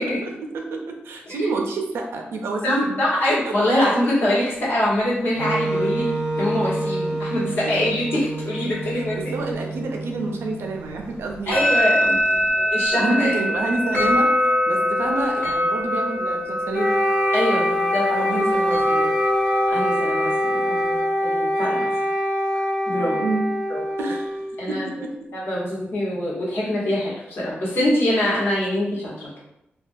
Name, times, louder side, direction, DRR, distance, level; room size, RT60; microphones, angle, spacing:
voice 1, 0.2-2.9 9.1-11.7 12.0-12.5 12.9-16.9 18.1-19.1 20.5-21.0 21.9-22.0 23.0-23.5 24.0-25.1, right 2 dB, 85° right, 2 dB, 0.4 m, -29 dB
voice 2, 2.6-6.1 6.4-9.3 11.5-12.2 12.6-13.3 17.3-18.1 19.7-20.7 21.2-21.9 22.9-23.2 23.7-23.8 24.6-24.9 25.3-29.4, left 1 dB, 65° left, -7 dB, 1.0 m, -24 dB
Wind instrument woodwind instrument, 5.3-11.4, right 2 dB, 85° left, 1.1 m, -28 dB
sound 1, 11.3-21.0, left 1 dB, 40° left, 0.9 m, -24 dB
Wind instrument woodwind instrument 2, 16.7-24.8, equal, 15° left, 0.6 m, -23 dB
2.2 x 2.2 x 2.5 m, 0.84 s
wide cardioid pair, 135°, 4 cm